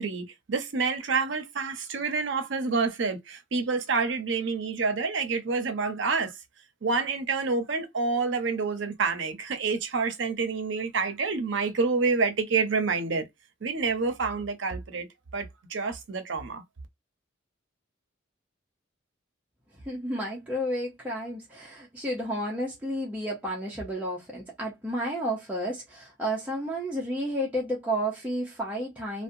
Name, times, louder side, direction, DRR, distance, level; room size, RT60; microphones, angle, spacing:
voice 1, 0.0-6.3 6.8-13.3 13.6-15.1 15.3-16.6, right 4 dB, 70° right, 0.6 m, -28 dB
voice 2, 19.8-29.2, equal, 5° right, 0.6 m, -31 dB
2.7 x 2.1 x 2.5 m
head